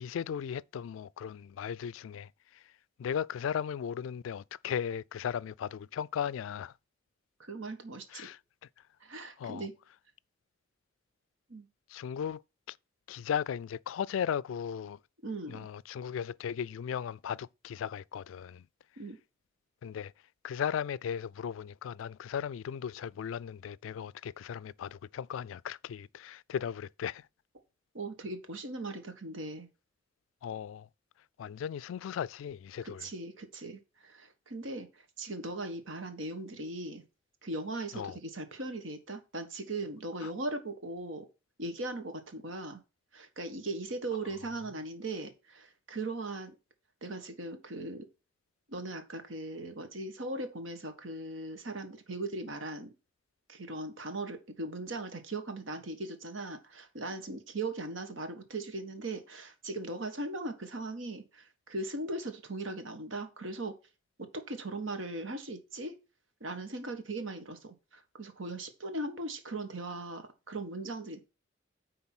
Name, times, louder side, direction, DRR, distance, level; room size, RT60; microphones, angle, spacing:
voice 1, 0.0-2.7 3.0-6.7 8.1-8.4 9.4-9.7 11.9-12.4 12.7-12.8 13.1-15.0 15.5-18.6 19.8-20.1 20.4-27.3 30.4-30.9 31.4-33.1 37.9-38.2 40.2-40.3, left 8 dB, 90° left, 0.3 m, -36 dB
voice 2, 7.4-8.3 9.0-9.7 11.5-11.7 15.2-15.7 19.0-19.2 27.9-29.7 32.8-37.0 37.4-41.3 41.6-42.8 43.1-46.5 47.0-48.0 48.7-52.9 53.5-63.7 64.2-65.9 66.4-71.2, right 2 dB, 80° right, 1.5 m, -39 dB
9.6 x 3.9 x 6.0 m
head